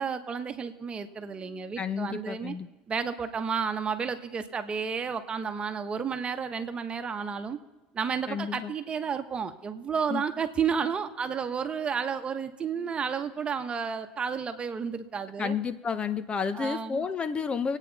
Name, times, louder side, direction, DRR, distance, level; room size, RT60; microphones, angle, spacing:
voice 1, 0.0-2.5 2.9-7.6 7.9-15.6 16.5-17.1, right 6 dB, 30° right, 8 dB, 1.3 m, -31 dB
voice 2, 1.8-2.7 8.3-8.7 10.1-10.2 15.4-17.8, left 6 dB, 30° left, 14 dB, 0.7 m, -31 dB
25.5 x 9.1 x 4.2 m, 1.2 s
supercardioid pair, 105°, 4 cm